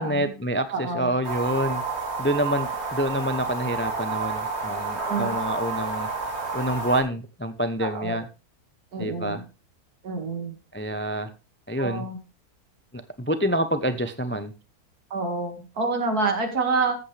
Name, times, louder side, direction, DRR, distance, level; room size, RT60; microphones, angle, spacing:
voice 1, 0.0-1.8 2.2-6.1 6.5-8.3 9.0-9.4 10.7-11.3 11.7-12.1 13.2-14.5, right 1 dB, 15° left, 10 dB, 0.3 m, -27 dB
voice 2, 0.7-1.1 5.1-5.3 7.8-8.2 8.9-9.4 10.0-10.5 11.8-12.2 15.1-17.0, right 3 dB, 80° right, 5 dB, 2.6 m, -27 dB
sound 1, 1.2-7.0, right 4 dB, 45° right, 2.6 m, -30 dB
14.0 x 8.5 x 3.3 m, 0.31 s
omnidirectional pair, 1.6 m